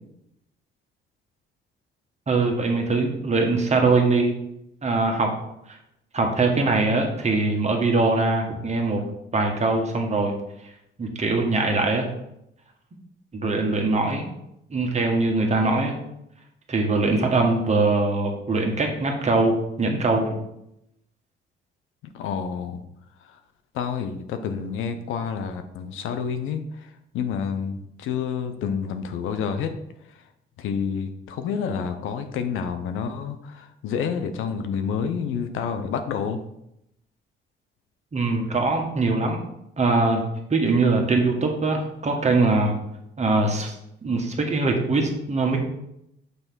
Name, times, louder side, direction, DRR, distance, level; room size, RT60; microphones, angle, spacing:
voice 1, 2.3-4.3 4.8-5.3 6.1-9.0 9.3-10.3 11.0-12.1 13.3-14.2 14.7-15.9 16.7-20.4 38.1-39.4 39.8-40.2 40.5-42.7 43.2-43.7 44.0-45.6, right 3 dB, 35° right, 2 dB, 1.6 m, -22 dB
voice 2, 22.1-22.8 23.3-23.4 23.7-29.7 30.6-36.4, left 6 dB, 90° left, 8 dB, 0.8 m, -29 dB
6.9 x 3.3 x 6.1 m, 0.80 s
cardioid pair, 90°, 20 cm